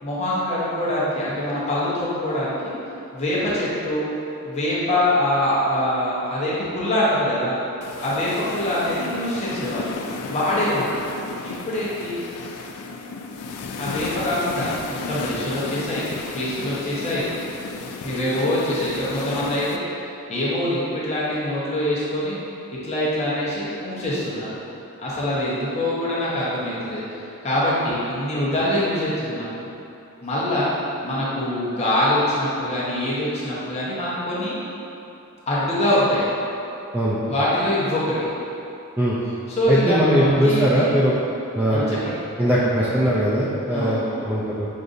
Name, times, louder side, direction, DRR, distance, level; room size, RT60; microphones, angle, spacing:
voice 1, 0.0-2.7 3.1-4.1 4.4-7.5 8.0-9.9 10.3-11.0 11.4-12.2 13.8-16.0 16.3-17.3 18.0-19.8 20.3-22.4 22.7-24.5 25.0-29.5 30.2-30.7 31.0-34.5 35.5-36.2 37.3-38.1 39.5-40.9 41.7-42.2 42.8-42.9 43.7-44.2, left 1 dB, 30° left, -8 dB, 0.9 m, -24 dB
sound 1, 7.8-19.8, left 4 dB, 85° left, 0.3 m, -33 dB
voice 2, 39.7-41.2 41.5-42.0 42.4-44.7, equal, 10° right, -8 dB, 0.3 m, -20 dB
6.3 x 2.6 x 2.6 m, 2.8 s
head